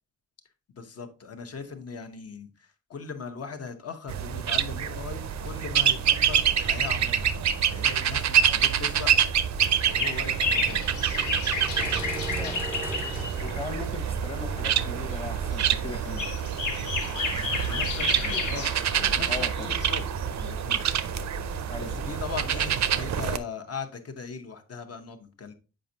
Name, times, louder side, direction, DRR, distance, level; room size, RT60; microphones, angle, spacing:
voice 1, 0.7-7.3 7.7-9.1 9.8-10.9 11.8-12.2 17.6-20.1 20.4-20.8 21.8-25.5, left 5 dB, 50° left, 0.9 m, -39 dB
sound 1, 4.1-23.4, right 9 dB, 60° right, 0.5 m, -27 dB
sound 2, 5.2-22.2, right 2 dB, 5° right, 0.4 m, -42 dB
sound 3, 9.6-13.7 14.9-15.2 15.5-19.0 19.2-19.3 19.6-19.7, left 4 dB, 70° left, 1.1 m, -32 dB
voice 2, 13.4-16.3 18.2-18.4 19.3-19.7 21.7-22.0, left 3 dB, 15° left, 0.9 m, -38 dB
7.4 x 5.2 x 2.7 m
wide cardioid pair, 145°, 31 cm